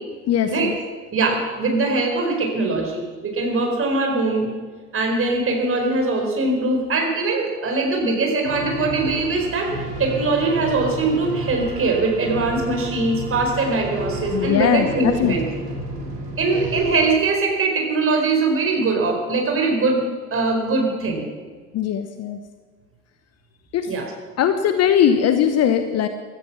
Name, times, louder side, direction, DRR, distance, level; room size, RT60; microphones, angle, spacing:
voice 1, 0.3-0.8 14.3-15.3 21.7-22.4 23.7-23.9 24.4-26.1, left 9 dB, 35° left, 9 dB, 1.0 m, -20 dB
voice 2, 1.1-4.5 4.9-9.7 10.0-15.4 16.4-20.1 20.3-21.2 23.9-24.0, right 3 dB, 30° right, 1 dB, 4.8 m, -21 dB
sound 1, 8.4-17.1, right 2 dB, 85° right, 2.5 m, -31 dB
16.0 x 13.5 x 6.2 m, 1.5 s
figure-of-eight pair, 75°, 47 cm